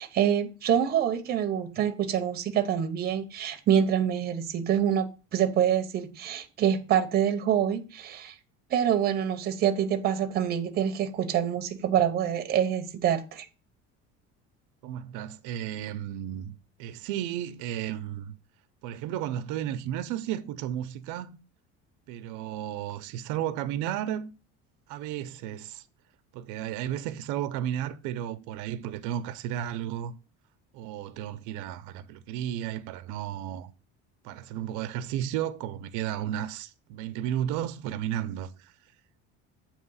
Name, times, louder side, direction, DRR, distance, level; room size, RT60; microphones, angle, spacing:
voice 1, 0.0-8.3 8.7-13.5, right 9 dB, 30° right, 0.8 m, -26 dB
voice 2, 14.8-16.5 16.8-18.3 18.8-21.3 22.1-24.3 24.9-25.8 26.3-30.1 30.7-33.7 34.2-38.7, right 11 dB, 90° right, 0.6 m, -33 dB
7.9 x 3.0 x 5.5 m
cardioid pair, 175°, 30 cm